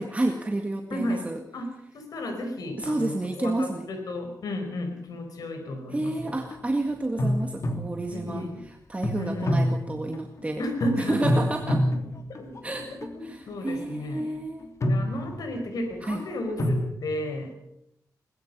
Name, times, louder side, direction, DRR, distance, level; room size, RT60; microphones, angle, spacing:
voice 1, 0.0-1.4 2.8-3.9 5.9-8.5 8.9-10.6 11.0-11.8 12.6-14.7 16.0-16.2, right 2 dB, 20° right, 4 dB, 1.9 m, -30 dB
voice 2, 0.9-1.2 1.5-6.3 8.1-8.6 9.1-9.5 10.6-11.5 11.9-12.0 12.3-14.3 14.8-17.5, left 1 dB, 75° left, 5 dB, 4.8 m, -33 dB
sound 1, 6.1-6.6 7.2-8.4 9.0-10.4 10.8-13.1 13.7-14.0 14.6-15.7 16.6-16.9, equal, 50° left, 3.0 m, -27 dB
22.5 x 21.0 x 5.5 m, 0.79 s
wide cardioid pair, 105°, 6 cm